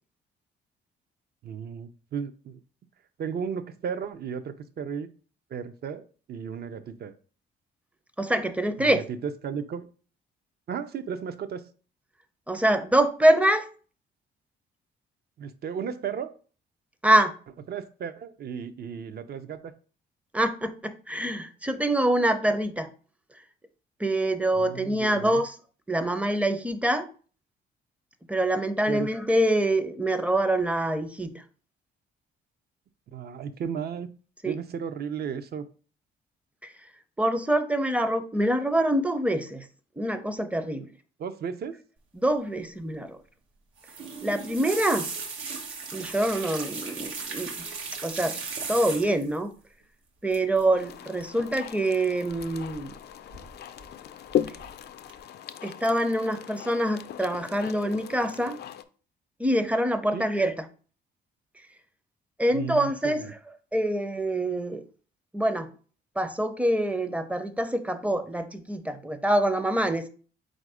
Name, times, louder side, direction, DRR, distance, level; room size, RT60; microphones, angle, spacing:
voice 1, 1.4-2.6 3.2-5.1 5.5-7.1 8.8-9.9 10.7-11.7 15.4-16.3 17.7-19.7 24.6-25.4 28.9-29.1 33.1-34.1 34.4-35.7 41.2-41.8 60.1-60.3 62.5-63.3, right 7 dB, 55° right, 0.6 m, -34 dB
voice 2, 8.2-9.0 12.5-13.7 17.0-17.3 20.3-22.9 24.0-25.5 25.9-27.1 28.3-31.3 34.4-34.6 37.2-39.7 40.0-40.9 42.2-43.2 44.2-45.1 45.9-47.7 48.0-48.4 48.7-49.5 50.2-52.9 55.6-58.6 59.4-60.6 62.4-63.2 63.7-64.8 65.3-65.7 66.2-70.1, right 1 dB, 5° right, 0.5 m, -25 dB
sound 1, 43.8-49.4 50.3-50.6 50.9-51.2 52.4-53.0 53.3-53.9 54.3-54.7 55.1-55.2, right 5 dB, 85° right, 0.9 m, -36 dB
sound 2, 50.7-58.8, left 10 dB, 55° left, 0.4 m, -37 dB
4.1 x 2.6 x 4.8 m
cardioid pair, 90°, 20 cm